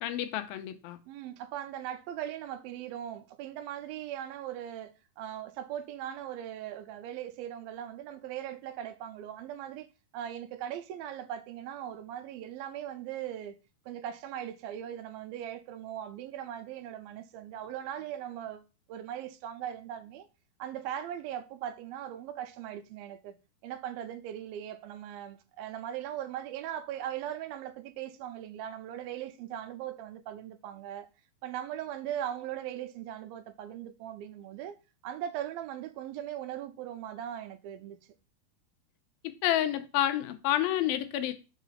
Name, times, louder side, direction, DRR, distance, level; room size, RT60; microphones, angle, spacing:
voice 1, 0.0-1.0 39.2-41.3, left 12 dB, 90° left, 2.5 m, -29 dB
voice 2, 1.1-9.9 10.1-13.6 13.9-18.6 18.9-20.3 20.6-23.4 23.6-31.1 31.4-34.8 35.0-38.0, right 10 dB, 85° right, 2.5 m, -39 dB
5.1 x 4.9 x 5.3 m
omnidirectional pair, 4.2 m